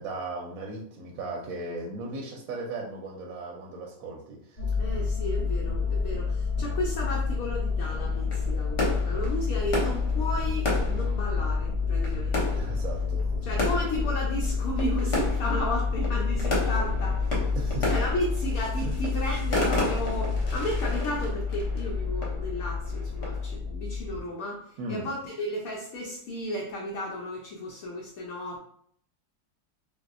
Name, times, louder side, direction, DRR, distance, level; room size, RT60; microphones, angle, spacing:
voice 1, 0.0-4.6 12.6-13.7 17.6-17.9 18.8-18.9 24.8-25.1, right 2 dB, 70° right, 0 dB, 0.9 m, -37 dB
sound 1, 4.6-24.2, left 4 dB, 90° left, 0.4 m, -28 dB
voice 2, 4.8-12.6 13.4-17.6 17.9-28.6, left 1 dB, 70° left, -2 dB, 1.0 m, -34 dB
sound 2, 7.8-23.6, left 1 dB, 50° left, 1.1 m, -34 dB
3.5 x 2.6 x 2.5 m, 0.64 s
omnidirectional pair, 1.7 m